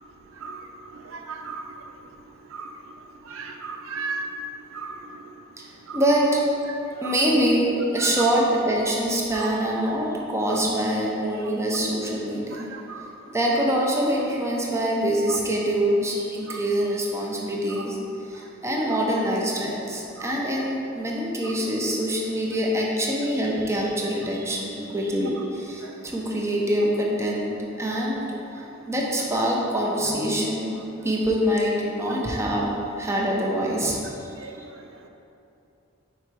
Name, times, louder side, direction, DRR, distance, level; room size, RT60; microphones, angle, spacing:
voice 1, 1.3-1.6 2.5-2.6 3.3-4.2 4.8-5.0 5.9-6.0 8.0-8.2 12.9-13.0 34.4-34.5, right 4 dB, 75° right, 4 dB, 0.5 m, -34 dB
voice 2, 5.9-6.6 7.0-12.7 13.3-18.0 18.3-28.2 28.9-30.8 31.0-32.7 33.0-34.0, equal, 15° right, -3 dB, 0.8 m, -24 dB
5.5 x 4.5 x 4.8 m, 2.8 s
head